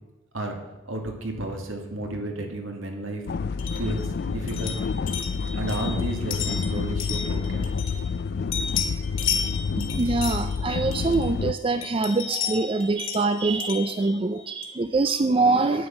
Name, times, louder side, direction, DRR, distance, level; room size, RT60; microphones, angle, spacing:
voice 1, 0.9-3.2 3.8-4.0 4.3-4.7 5.5-7.7, right 1 dB, 75° right, 3 dB, 2.3 m, -32 dB
sound 1, 3.3-11.5, left 5 dB, 50° left, 0.3 m, -29 dB
sound 2, 3.6-8.2 8.5-11.4 11.8-14.9, left 7 dB, 65° left, 1.5 m, -34 dB
voice 2, 9.8-15.9, right 3 dB, 25° right, 9 dB, 0.4 m, -24 dB
9.4 x 9.2 x 5.8 m, 1.1 s
head